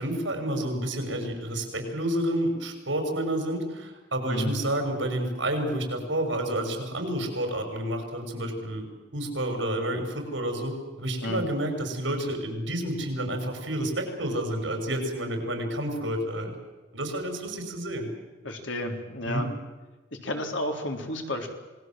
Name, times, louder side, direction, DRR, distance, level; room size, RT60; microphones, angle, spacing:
voice 1, 0.0-8.9 9.1-16.5 16.9-18.1 19.2-19.4, right 1 dB, 75° right, 5 dB, 6.2 m, -29 dB
voice 2, 4.2-4.6 11.2-11.5 18.4-19.5 20.2-21.5, left 1 dB, 80° left, 4 dB, 3.8 m, -31 dB
27.0 x 20.5 x 7.7 m, 1.2 s
head